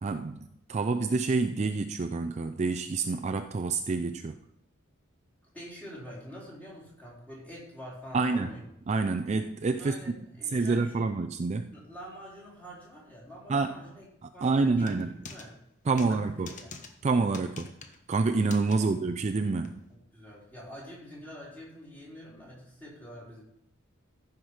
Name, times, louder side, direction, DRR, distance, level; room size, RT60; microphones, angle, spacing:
voice 1, 0.0-4.4 8.1-8.6 8.9-9.9 10.5-11.7 13.5-13.8 14.2-15.1 15.9-16.5 17.0-17.7 18.1-19.8, right 3 dB, 35° right, 7 dB, 0.4 m, -28 dB
voice 2, 5.5-8.7 9.8-11.0 11.7-14.0 14.3-15.6 16.0-16.2 16.4-16.7 18.8-18.9 20.1-23.4, equal, 10° left, -6 dB, 4.0 m, -46 dB
sound 1, 14.8-15.5 16.0-16.1 16.5-16.9 17.3-18.0 18.5-18.8 19.6-19.7, left 4 dB, 40° left, 1.1 m, -44 dB
14.5 x 5.9 x 4.9 m, 0.77 s
head